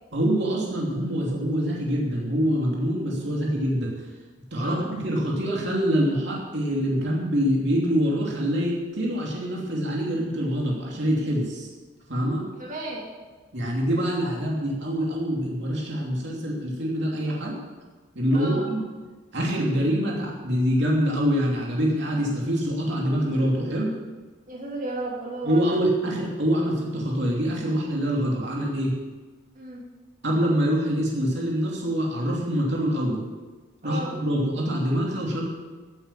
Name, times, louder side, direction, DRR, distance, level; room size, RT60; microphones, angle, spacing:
voice 1, 0.1-3.9 4.5-11.7 12.1-12.5 13.5-17.6 18.1-18.8 19.3-23.9 25.4-28.9 30.2-33.2 33.8-35.4, equal, 55° right, -3 dB, 2.9 m, -25 dB
voice 2, 4.6-4.9 12.5-13.1 18.3-18.7 24.5-25.6 29.5-29.8 33.8-34.1, right 2 dB, 35° right, -4 dB, 2.9 m, -33 dB
14.5 x 8.4 x 7.3 m, 1.3 s
head